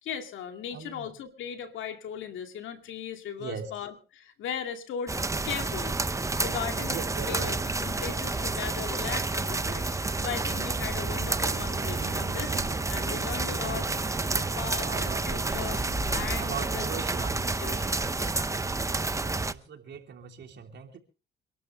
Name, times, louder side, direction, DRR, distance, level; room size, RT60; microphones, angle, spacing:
voice 1, 0.0-6.0 6.4-7.0 7.2-12.5 12.9-13.9 14.3-15.8 16.1-17.1 17.3-18.5, left 8 dB, 80° left, 6 dB, 2.3 m, -38 dB
voice 2, 0.7-1.1 3.4-3.7 6.9-7.6 14.7-15.2 16.4-17.4 19.2-21.0, right 7 dB, 60° right, 3 dB, 3.4 m, -39 dB
sound 1, 5.1-19.5, right 3 dB, 15° right, 0.9 m, -30 dB
Car, 11.3-16.9, right 7 dB, 80° right, 5.8 m, -44 dB
sound 2, 14.8-16.9, left 1 dB, 5° left, 5.2 m, -44 dB
26.5 x 12.5 x 3.4 m, 0.34 s
cardioid pair, 90°, 20 cm